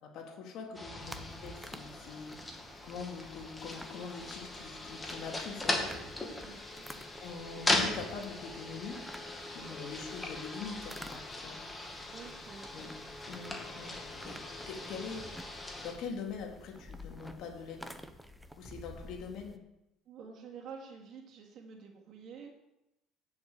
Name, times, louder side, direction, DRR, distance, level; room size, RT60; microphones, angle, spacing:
voice 1, 0.0-2.4 2.8-6.3 7.2-9.0 9.5-11.6 12.7-12.9 13.3-14.4 14.7-15.3 15.8-18.0 18.5-19.6, left 5 dB, 60° left, 2 dB, 2.3 m, -43 dB
sound 1, 0.7-15.9, left 2 dB, 15° left, 2.1 m, -39 dB
sound 2, 1.0-19.6, left 1 dB, ahead, 0.7 m, -52 dB
voice 2, 6.4-7.0 9.6-9.8 12.1-12.9 20.1-22.5, right 6 dB, 55° right, 1 dB, 2.3 m, -49 dB
8.8 x 7.1 x 6.7 m, 0.91 s
cardioid pair, 110°, 0 cm